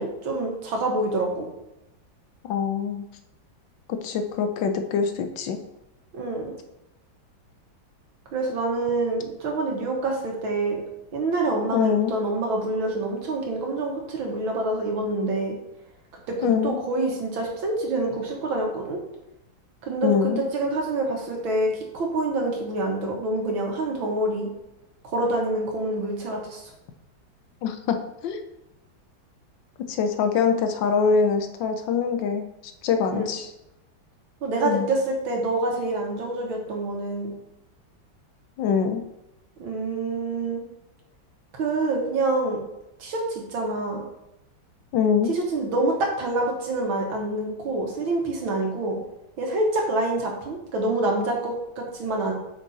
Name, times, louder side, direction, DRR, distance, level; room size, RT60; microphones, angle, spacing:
voice 1, 0.0-1.5 6.1-6.5 8.3-10.8 11.1-15.5 16.3-19.0 19.8-24.5 25.0-26.6 33.1-33.3 34.4-37.3 39.6-40.6 41.5-42.6 43.0-44.0 45.3-49.0 49.4-52.3, right 2 dB, 80° right, 0 dB, 2.2 m, -26 dB
voice 2, 2.4-3.0 3.9-5.6 11.7-12.2 16.4-16.8 20.0-20.4 27.6-28.0 28.2-28.4 29.9-32.5 32.8-33.5 34.6-34.9 38.6-39.0 44.9-45.3, left 6 dB, 75° left, 7 dB, 1.3 m, -24 dB
6.5 x 5.3 x 4.1 m, 0.89 s
omnidirectional pair, 2.2 m